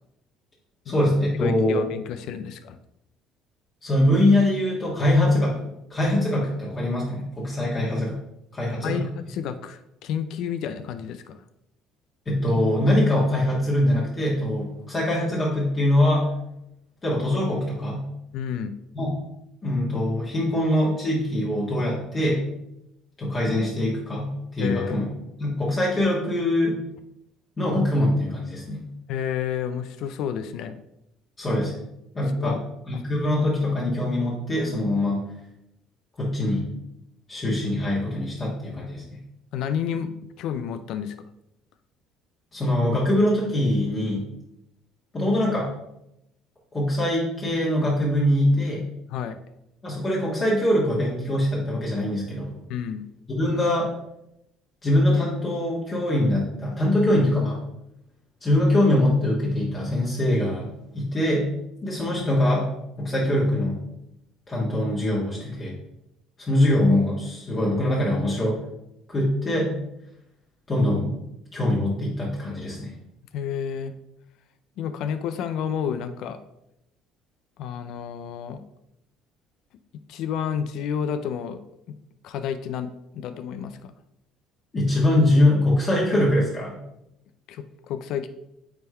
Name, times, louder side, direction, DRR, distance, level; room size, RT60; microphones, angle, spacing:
voice 1, 0.8-1.8 3.8-8.2 8.5-9.1 12.2-16.2 17.0-18.1 18.9-19.2 19.6-22.4 23.2-25.1 25.4-26.8 27.6-28.8 31.4-31.7 32.1-32.6 32.9-35.3 36.2-36.7 37.3-39.2 42.5-44.3 45.1-45.7 46.7-48.8 49.8-52.6 53.3-53.9 54.8-57.6 58.4-61.5 61.8-62.7 63.0-63.8 64.5-65.7 66.4-68.6 69.1-69.7 70.7-71.1 71.5-72.9 84.7-86.7, left 1 dB, 30° left, -5 dB, 1.6 m, -23 dB
voice 2, 1.4-2.8 8.8-11.4 18.3-18.7 24.6-25.1 29.1-30.8 32.4-32.6 32.9-33.0 39.5-40.1 40.4-41.1 49.1-49.4 52.7-53.0 73.3-73.9 74.8-76.4 77.6-78.6 80.1-81.6 81.9-82.0 82.2-83.9 87.5-88.3, left 8 dB, 70° left, 10 dB, 0.4 m, -30 dB
8.8 x 3.5 x 3.3 m, 0.84 s
cardioid pair, 105°, 0 cm